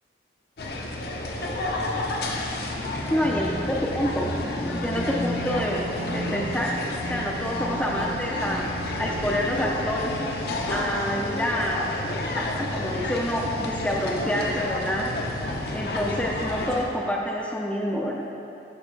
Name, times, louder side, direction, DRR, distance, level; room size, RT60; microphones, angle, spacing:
sound 1, 0.6-16.8, left 1 dB, 60° left, 0.7 m, -31 dB
sound 2, 2.8-10.5, right 1 dB, 30° right, 1.0 m, -36 dB
voice 1, 3.1-6.8 7.1-8.6 9.0-10.2 10.7-11.8 12.4-15.1 15.7-18.2, equal, 5° left, -2 dB, 0.5 m, -27 dB
11.5 x 4.8 x 3.3 m, 2.7 s
head